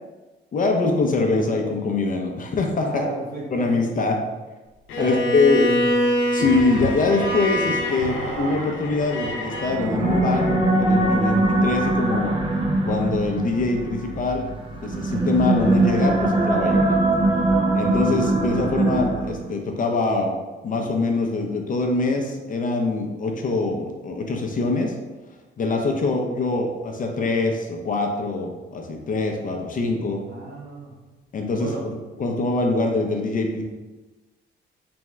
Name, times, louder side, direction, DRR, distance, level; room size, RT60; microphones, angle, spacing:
voice 1, 0.5-3.0 3.5-4.2 5.0-5.6 6.3-10.5 10.8-12.4 12.8-14.5 14.8-17.1 17.7-20.3 20.6-24.9 25.6-30.2 31.3-33.6, left 3 dB, 40° left, 2 dB, 0.6 m, -23 dB
voice 2, 2.8-3.7 5.0-5.2 5.5-5.9 30.3-31.0 31.5-31.9, right 1 dB, 50° right, -2 dB, 1.1 m, -32 dB
Bowed string instrument, 4.9-9.8, left 1 dB, 80° left, 0.7 m, -25 dB
sound 1, 6.4-12.3, right 5 dB, 80° right, 0.4 m, -35 dB
sound 2, 9.7-19.5, right 2 dB, 25° right, 0.6 m, -22 dB
3.5 x 3.4 x 3.1 m, 1.2 s
cardioid pair, 90°, 20 cm